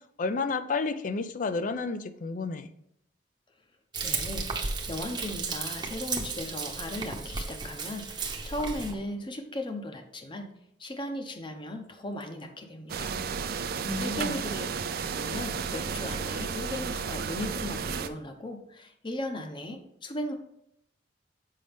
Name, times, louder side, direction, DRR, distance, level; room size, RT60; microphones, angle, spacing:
voice 1, 0.2-2.7 13.8-14.4, left 4 dB, 45° left, 11 dB, 0.4 m, -31 dB
Frying (food), 3.9-8.9, right 4 dB, 25° right, 0.8 m, -34 dB
voice 2, 4.0-10.5 10.8-13.1 14.0-20.3, left 1 dB, 25° left, 6 dB, 0.8 m, -37 dB
sound 1, 12.9-18.1, right 6 dB, 55° right, 0.4 m, -33 dB
7.5 x 5.2 x 3.4 m, 0.75 s
head